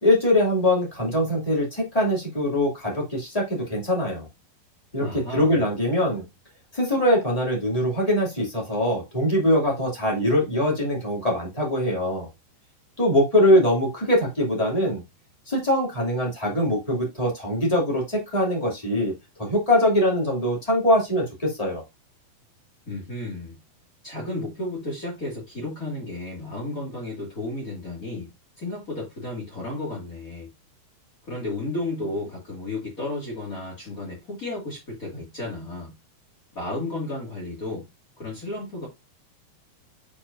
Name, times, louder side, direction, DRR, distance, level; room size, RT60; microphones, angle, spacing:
voice 1, 0.0-4.3 4.9-6.2 6.7-12.3 13.0-15.0 15.5-19.1 19.4-21.8, left 1 dB, 20° left, 0.9 m, -22 dB
voice 2, 5.0-5.6 22.9-23.6 24.0-28.3 28.6-30.5 31.3-35.9 36.5-37.8 38.2-38.9, left 2 dB, 75° left, 0.8 m, -33 dB
8.3 x 4.6 x 2.5 m
omnidirectional pair, 5.4 m